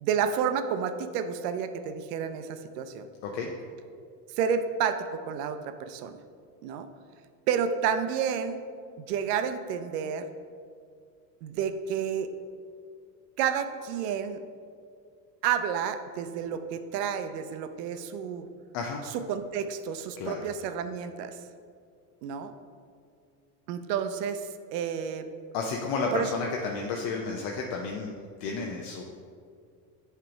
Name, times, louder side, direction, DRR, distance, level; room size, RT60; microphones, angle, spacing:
voice 1, 0.0-3.1 4.4-6.2 6.6-6.9 7.5-8.6 9.0-10.3 11.4-12.3 13.4-14.4 15.4-18.5 19.3-21.4 22.2-22.5 23.7-25.3 26.1-26.3, right 7 dB, 85° right, 9 dB, 0.7 m, -30 dB
voice 2, 25.5-28.1 28.4-29.0, left 4 dB, 60° left, 1 dB, 0.8 m, -31 dB
7.5 x 3.4 x 5.1 m, 2.2 s
supercardioid pair, 95°, 47 cm